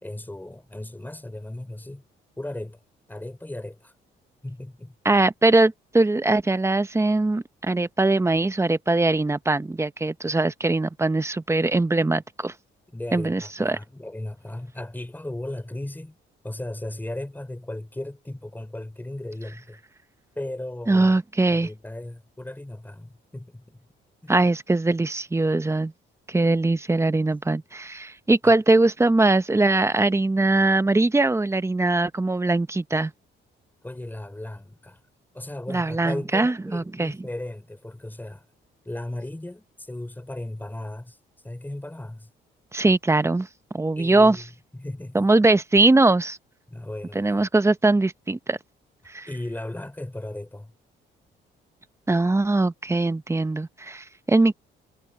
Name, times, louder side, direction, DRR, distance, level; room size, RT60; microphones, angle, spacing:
voice 1, 0.0-2.0 2.4-2.8 3.1-3.9 4.4-5.2 12.9-16.2 16.4-19.8 20.4-21.1 21.5-23.8 24.2-24.4 28.4-28.5 33.8-35.0 35.3-38.5 38.8-41.2 41.4-42.3 44.0-45.3 46.7-47.5 49.3-50.7, left 1 dB, 10° left, 3.7 m, -36 dB
voice 2, 5.0-12.5 13.1-13.8 20.9-21.7 24.3-25.9 26.3-33.1 35.7-37.1 42.7-43.5 43.7-44.4 45.1-46.4 47.1-48.6 49.1-49.3 52.1-54.5, right 2 dB, 15° right, 0.9 m, -21 dB
cardioid pair, 90°, 20 cm